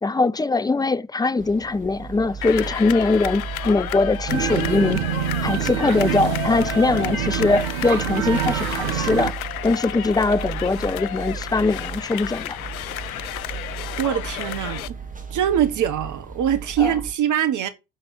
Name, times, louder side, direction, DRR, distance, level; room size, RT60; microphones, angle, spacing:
voice 1, 0.0-5.0 5.4-9.3 9.6-12.6 16.8-16.9, left 3 dB, 10° left, 0.7 m, -21 dB
sound 1, 1.4-17.1, right 6 dB, 20° right, 2.6 m, -35 dB
sound 2, 2.4-14.9, left 13 dB, 85° left, 0.7 m, -32 dB
sound 3, 4.3-9.3, right 10 dB, 75° right, 1.3 m, -26 dB
voice 2, 14.0-14.9 15.3-17.7, right 10 dB, 45° right, 1.5 m, -23 dB
7.2 x 6.8 x 7.3 m
hypercardioid pair, 70°, 41 cm